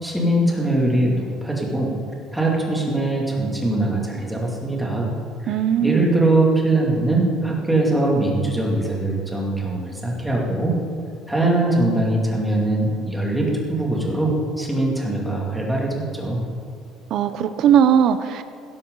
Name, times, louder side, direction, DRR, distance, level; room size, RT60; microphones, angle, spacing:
voice 1, 0.0-1.9 2.3-5.1 5.4-10.7 11.3-16.4, right 2 dB, 5° right, -3 dB, 2.5 m, -22 dB
voice 2, 5.5-6.1 17.1-18.4, right 8 dB, 50° right, 10 dB, 0.6 m, -18 dB
16.0 x 13.5 x 3.9 m, 2.4 s
cardioid pair, 155°, 0 cm